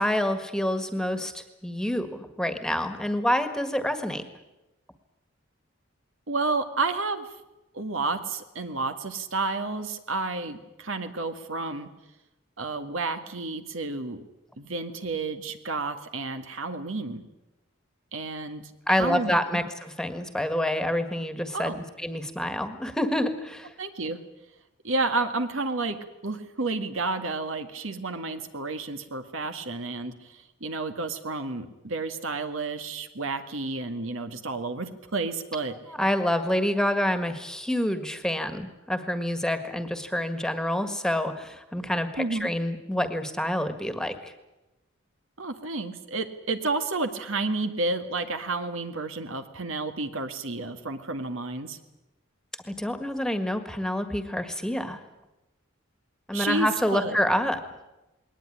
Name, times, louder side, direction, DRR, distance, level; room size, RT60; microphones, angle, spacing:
voice 1, 0.0-4.3 18.9-23.7 35.9-44.3 52.6-55.0 56.3-57.6, left 1 dB, 5° left, 9 dB, 1.7 m, -27 dB
voice 2, 6.3-7.3 7.7-11.9 12.6-14.2 14.6-17.2 18.1-18.6 18.9-19.3 21.5-21.8 23.8-24.2 24.8-26.0 26.2-30.1 30.6-35.7 42.2-42.5 45.4-51.8 56.3-57.2, right 3 dB, 80° right, 8 dB, 1.9 m, -31 dB
21.0 x 19.0 x 10.0 m, 1.0 s
head